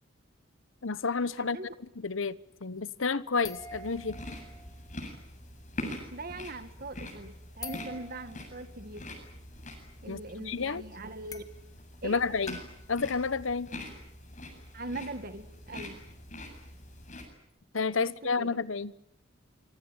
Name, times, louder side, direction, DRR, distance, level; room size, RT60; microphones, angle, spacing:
voice 1, 0.8-1.6 2.0-4.2 10.1-10.2 10.5-10.8 12.0-12.6 12.9-13.7 17.7-18.9, left 4 dB, 80° left, 1.0 m, -30 dB
voice 2, 1.4-1.8 6.1-9.1 10.0-11.5 12.0-12.2 14.7-16.0 18.0-18.6, right 2 dB, 50° right, 1.7 m, -41 dB
sound 1, 2.8-3.0 3.4-5.0 7.6-8.4 10.1-10.2 10.4-10.5 11.2-11.5 12.4-12.8 13.4-13.5 17.5-17.6, left 2 dB, 20° left, 1.7 m, -45 dB
sound 2, 3.6-17.3, left 1 dB, 40° left, 8.0 m, -44 dB
26.5 x 24.5 x 9.0 m
head